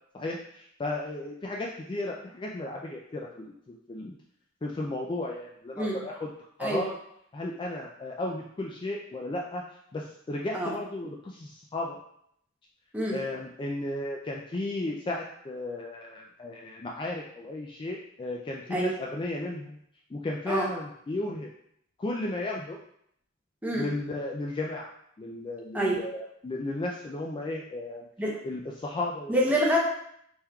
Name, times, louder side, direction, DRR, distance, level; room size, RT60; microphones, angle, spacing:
voice 1, 0.1-3.5 3.9-4.1 4.6-6.3 6.6-6.9 7.3-9.6 9.9-12.0 13.1-19.8 20.1-21.5 22.0-22.8 23.7-24.9 25.2-28.0 28.4-29.4, left 2 dB, 25° left, -1 dB, 0.3 m, -34 dB
voice 2, 29.3-29.8, right 1 dB, 10° right, -3 dB, 0.7 m, -26 dB
4.3 x 3.6 x 2.2 m, 0.71 s
head